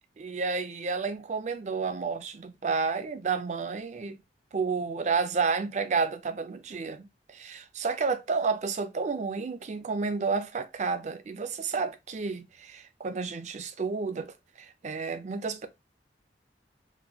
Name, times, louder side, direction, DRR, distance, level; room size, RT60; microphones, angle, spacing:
voice 1, 0.2-4.2 4.5-15.7, right 4 dB, 40° right, 0.4 m, -31 dB
3.9 x 2.2 x 2.7 m
head